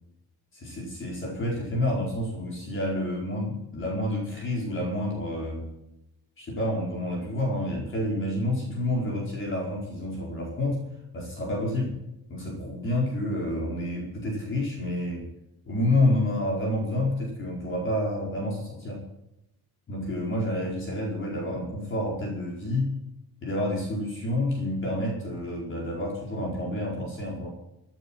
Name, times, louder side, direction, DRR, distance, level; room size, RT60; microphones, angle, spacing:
voice 1, 0.5-5.7 6.4-10.8 11.1-11.9 12.3-15.3 15.6-19.0 19.9-22.9 23.4-27.5, left 1 dB, 30° left, -1 dB, 4.7 m, -29 dB
16.0 x 9.3 x 7.5 m, 0.84 s
cardioid pair, 170°, 38 cm